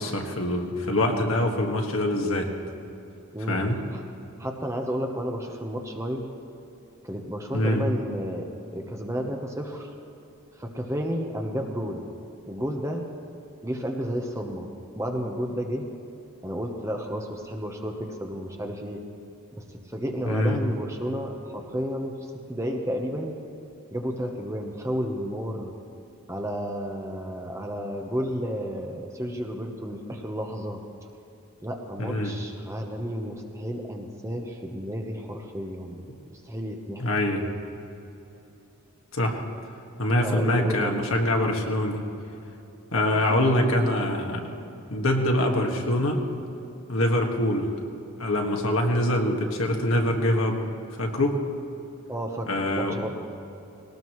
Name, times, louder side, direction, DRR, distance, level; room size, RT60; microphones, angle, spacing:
voice 1, 0.0-2.5 3.5-3.8 7.5-7.8 20.2-20.6 32.0-32.3 37.0-37.5 39.1-39.4 40.0-42.0 42.9-44.5 44.9-46.2 46.9-47.7 48.2-50.6 51.0-51.4 52.5-53.1, left 1 dB, 65° left, 1 dB, 1.7 m, -24 dB
voice 2, 3.3-4.0 4.4-6.3 7.0-9.9 10.6-12.0 12.4-13.1 13.6-14.7 14.9-15.9 16.4-19.0 19.6-22.2 22.5-23.3 23.9-25.7 26.3-30.8 31.6-36.0 36.3-37.1 40.2-41.0 52.1-53.1, equal, 15° right, 2 dB, 1.0 m, -32 dB
19.5 x 18.5 x 3.2 m, 2.9 s
head